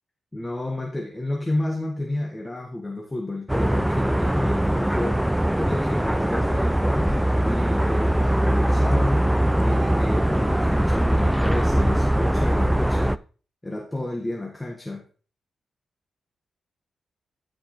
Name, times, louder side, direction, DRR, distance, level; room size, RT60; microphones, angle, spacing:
voice 1, 0.3-9.2 9.6-13.2 13.6-15.0, left 1 dB, 15° left, 1 dB, 1.6 m, -31 dB
sound 1, 3.5-13.2, right 1 dB, 5° right, 0.4 m, -21 dB
sound 2, 9.6-10.8, right 3 dB, 50° right, 0.9 m, -38 dB
13.0 x 5.2 x 3.2 m, 0.40 s
supercardioid pair, 45°, 0 cm